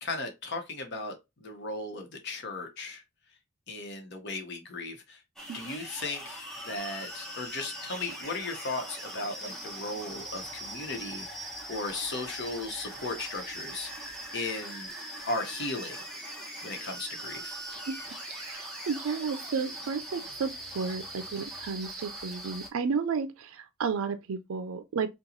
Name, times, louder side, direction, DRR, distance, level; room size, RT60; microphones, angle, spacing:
voice 1, 0.0-3.0 3.7-5.2 5.5-13.9 14.3-14.9 15.3-16.0 16.6-17.6, left 2 dB, 55° left, 0.9 m, -36 dB
sound 1, 5.4-22.7, right 1 dB, ahead, 0.9 m, -41 dB
voice 2, 18.3-25.1, right 5 dB, 85° right, 0.4 m, -32 dB
2.9 x 2.3 x 3.8 m
head